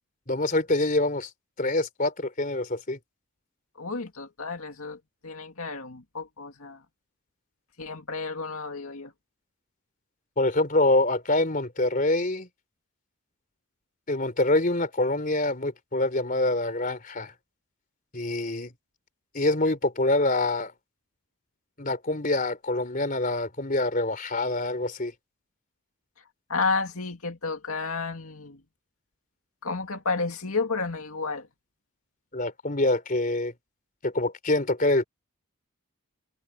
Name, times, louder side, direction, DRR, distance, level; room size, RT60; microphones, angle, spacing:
voice 1, 0.3-1.3 1.6-3.0 10.4-12.5 14.1-17.3 18.1-18.7 19.3-20.7 21.8-25.1 32.3-33.5 34.0-35.0, left 2 dB, 40° left, 3.6 m, -25 dB
voice 2, 3.8-6.8 7.8-9.1 26.5-28.6 29.6-31.5, left 4 dB, 75° left, 2.2 m, -31 dB
head